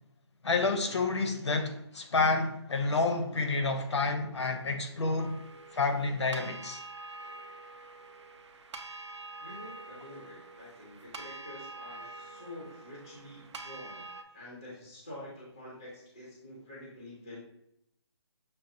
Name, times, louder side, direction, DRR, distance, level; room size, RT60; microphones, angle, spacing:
voice 1, 0.4-5.4 5.7-6.8, left 3 dB, 75° left, 0.6 m, -29 dB
sound 1, 5.2-14.2, right 3 dB, 80° right, 0.5 m, -46 dB
voice 2, 9.4-14.0 14.3-17.4, left 1 dB, 10° left, 0.4 m, -47 dB
6.2 x 2.2 x 2.6 m
hypercardioid pair, 180°, 15 cm